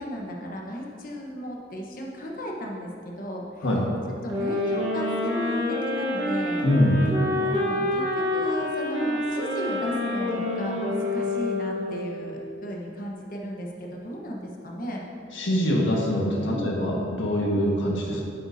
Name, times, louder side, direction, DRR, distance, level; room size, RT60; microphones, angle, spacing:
voice 1, 0.0-2.9 3.2-3.7 4.2-6.6 7.4-15.0 16.5-16.7 17.4-17.6, equal, 45° left, -1 dB, 1.1 m, -35 dB
sound 1, 4.3-12.3, left 2 dB, 25° right, 1.4 m, -27 dB
voice 2, 6.6-7.1 15.3-18.3, equal, 85° left, -3 dB, 1.6 m, -23 dB
9.8 x 8.2 x 2.7 m, 2.7 s
head